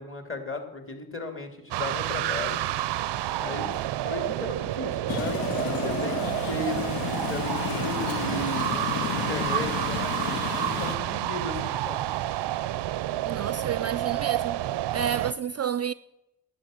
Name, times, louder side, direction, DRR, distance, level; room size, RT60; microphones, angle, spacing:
voice 1, 0.0-1.5 1.7-2.6 3.3-12.1, left 2 dB, 30° left, 2.8 m, -36 dB
sound 1, 1.7-15.3, right 14 dB, 90° right, 0.5 m, -29 dB
sound 2, 5.1-11.0, left 11 dB, 60° left, 0.5 m, -32 dB
voice 2, 13.2-14.6 14.9-15.9, right 8 dB, 40° right, 0.4 m, -30 dB
11.0 x 8.9 x 7.8 m
cardioid pair, 75°, 40 cm